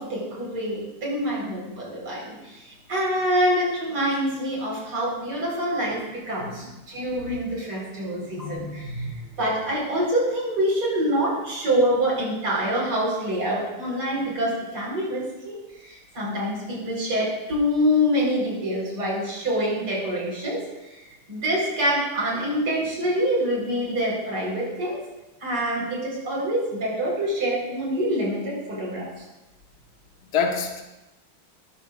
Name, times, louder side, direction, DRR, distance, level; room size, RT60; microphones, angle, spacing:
voice 1, 0.0-21.0 21.3-25.0 25.4-29.1, equal, 75° right, -4 dB, 5.4 m, -26 dB
voice 2, 6.9-7.4 8.2-9.3 30.2-30.8, left 5 dB, 50° left, 1 dB, 1.8 m, -30 dB
17.5 x 14.0 x 2.5 m, 1.0 s
omnidirectional pair, 2.4 m